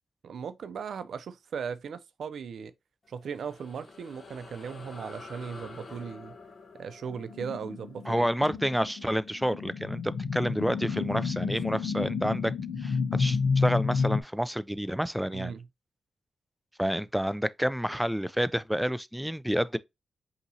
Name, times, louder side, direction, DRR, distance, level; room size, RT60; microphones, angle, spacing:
voice 1, 0.2-2.7 3.1-6.3 6.8-8.3 15.3-15.7, right 6 dB, 75° right, 0.5 m, -38 dB
sound 1, 3.0-9.9, left 3 dB, 50° left, 1.1 m, -49 dB
sound 2, 7.1-14.2, left 5 dB, 85° left, 0.6 m, -30 dB
voice 2, 8.1-12.5 12.8-15.5 16.8-19.8, equal, ahead, 0.3 m, -29 dB
5.3 x 2.9 x 2.7 m
cardioid pair, 80°, 0 cm